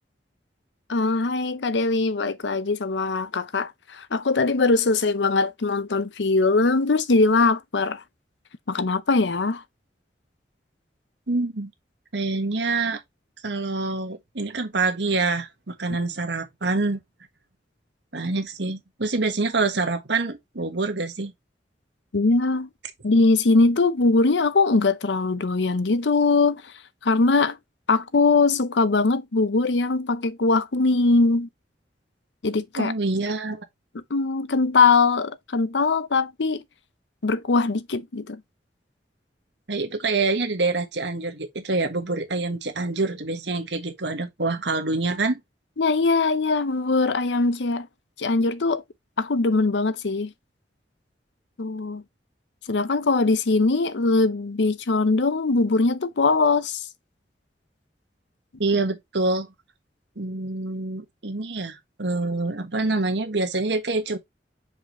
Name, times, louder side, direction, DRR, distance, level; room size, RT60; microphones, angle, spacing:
voice 1, 0.9-8.0 8.7-9.6 22.1-22.7 23.0-26.7 27.0-27.6 27.9-31.5 32.4-32.9 33.9-36.6 37.2-38.4 45.8-47.9 48.2-48.8 49.2-50.3 51.6-52.0 52.7-56.9, left 3 dB, 75° left, 0.7 m, -21 dB
voice 2, 11.3-11.7 12.1-13.0 13.4-17.0 18.1-21.3 32.8-33.6 39.7-45.4 58.6-59.5 60.2-64.2, right 3 dB, 75° right, 1.5 m, -26 dB
6.0 x 5.2 x 3.0 m
head